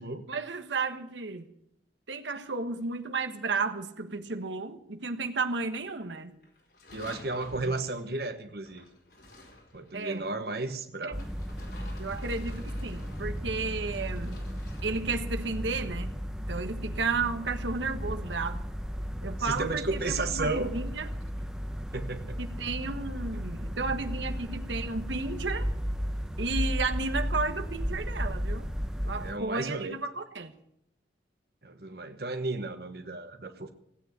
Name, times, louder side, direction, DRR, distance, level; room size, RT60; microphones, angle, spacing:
voice 1, 0.3-1.5 2.1-6.4 7.6-7.7 9.9-10.3 11.0-11.2 12.0-14.4 14.8-16.1 16.5-18.6 19.2-21.1 22.4-25.7 26.4-28.7 29.0-30.5, right 4 dB, 85° right, 1.4 m, -33 dB
sound 1, 5.6-6.1 6.4-10.4 11.2-14.8, left 1 dB, 65° left, 4.2 m, -51 dB
voice 2, 6.9-8.9 9.7-11.2 19.4-20.7 21.9-22.4 29.2-30.0 31.6-33.7, right 3 dB, 55° right, 1.2 m, -33 dB
sound 2, 11.1-29.3, equal, 5° right, 0.9 m, -34 dB
16.5 x 9.3 x 8.1 m
head